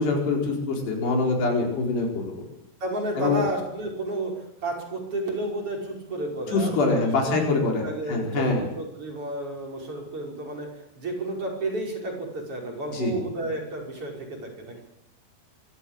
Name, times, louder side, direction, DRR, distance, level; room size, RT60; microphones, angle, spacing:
voice 1, 0.0-2.4 3.2-3.4 6.5-8.6 12.9-13.1, left 3 dB, 80° left, 1 dB, 6.8 m, -24 dB
voice 2, 2.8-4.3 4.6-7.4 7.8-10.7 11.0-14.8, right 2 dB, 35° right, 0 dB, 6.1 m, -32 dB
24.0 x 14.5 x 8.7 m, 0.85 s
omnidirectional pair, 4.7 m